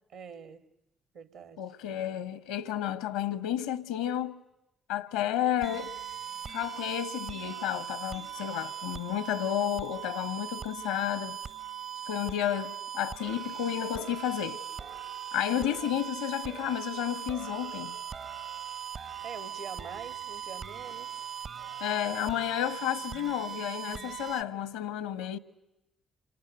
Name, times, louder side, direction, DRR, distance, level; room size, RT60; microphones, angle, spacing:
voice 1, 0.1-0.6 1.1-1.6 15.5-16.0 19.2-21.1, right 6 dB, 65° right, 2.0 m, -45 dB
voice 2, 1.6-4.4 4.9-5.9 6.5-11.4 12.1-14.6 15.3-18.0 21.8-25.4, left 11 dB, 75° left, 1.2 m, -31 dB
sound 1, 5.6-24.4, right 9 dB, 45° right, 1.2 m, -40 dB
28.0 x 26.5 x 7.7 m
figure-of-eight pair, 40°, 0 cm